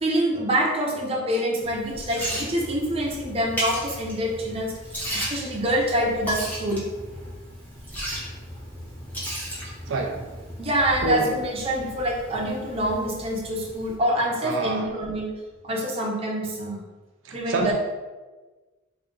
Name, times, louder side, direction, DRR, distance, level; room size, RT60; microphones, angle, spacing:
voice 1, 0.0-4.7 5.1-6.9 10.6-15.3 15.6-16.8 17.3-17.7, right 1 dB, 30° right, -2 dB, 0.7 m, -26 dB
Liquid, 1.6-13.9, equal, 10° left, 0.8 m, -35 dB
voice 2, 9.9-10.3 11.0-11.3 14.4-14.9 17.2-17.7, right 2 dB, 75° right, 2 dB, 0.4 m, -27 dB
3.7 x 2.8 x 3.8 m, 1.2 s
head